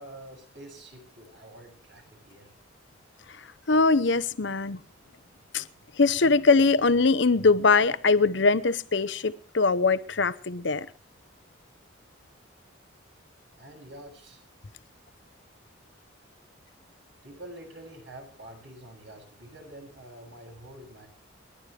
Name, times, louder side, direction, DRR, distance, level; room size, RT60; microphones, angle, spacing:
voice 1, 0.0-2.5 13.6-14.4 17.2-21.1, right 1 dB, 70° right, 7.0 m, -47 dB
voice 2, 3.7-4.8 5.5-5.6 6.0-10.9, left 4 dB, 65° left, 0.8 m, -22 dB
29.5 x 11.5 x 3.4 m
head